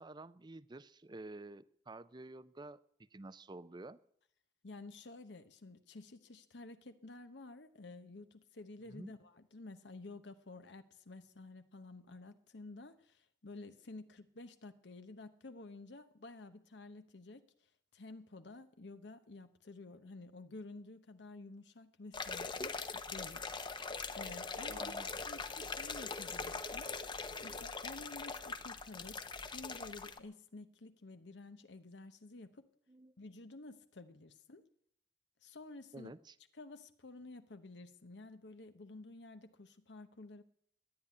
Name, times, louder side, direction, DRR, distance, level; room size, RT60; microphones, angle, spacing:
voice 1, 0.0-2.8 3.1-4.0 8.9-9.1 24.7-25.1 32.9-33.1 35.9-36.3, right 2 dB, 25° right, 17 dB, 0.5 m, -50 dB
voice 2, 4.6-17.4 17.9-23.8 24.1-32.7 33.2-34.6 35.4-36.1 36.6-40.4, left 2 dB, 70° left, 10 dB, 0.9 m, -52 dB
sound 1, 22.1-30.2, left 4 dB, 25° left, 0.8 m, -42 dB
12.5 x 9.9 x 9.5 m, 0.69 s
head